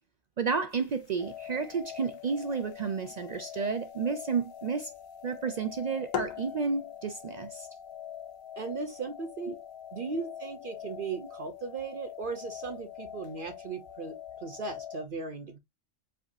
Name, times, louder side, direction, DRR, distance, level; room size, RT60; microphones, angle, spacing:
voice 1, 0.4-4.9 5.2-7.7 9.5-9.6 10.1-10.2 11.2-11.3, right 5 dB, 85° right, 0.3 m, -31 dB
sound 1, 0.7-14.9, left 8 dB, 85° left, 1.1 m, -48 dB
sound 2, 1.2-15.1, left 10 dB, 60° left, 0.6 m, -44 dB
voice 2, 8.6-9.6 9.9-15.6, right 4 dB, 55° right, 0.7 m, -37 dB
4.8 x 3.5 x 2.5 m
omnidirectional pair, 1.3 m